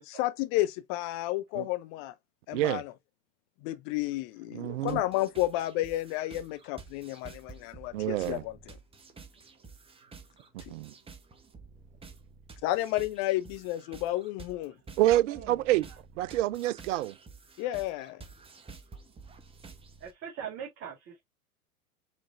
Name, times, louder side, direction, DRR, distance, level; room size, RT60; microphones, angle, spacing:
voice 1, 0.2-2.1 2.5-2.9 3.6-8.6 12.6-14.7 17.6-18.2, left 16 dB, 35° left, 0.5 m, -31 dB
voice 2, 2.5-2.8 4.5-5.0 7.9-8.4 10.7-10.9 15.0-15.9 16.2-17.1, right 14 dB, 55° right, 0.5 m, -27 dB
sound 1, 4.9-20.1, right 4 dB, 15° right, 0.9 m, -51 dB
voice 3, 15.3-15.6 20.0-21.2, right 8 dB, 30° right, 1.6 m, -42 dB
5.0 x 3.3 x 2.5 m
figure-of-eight pair, 90°, 44 cm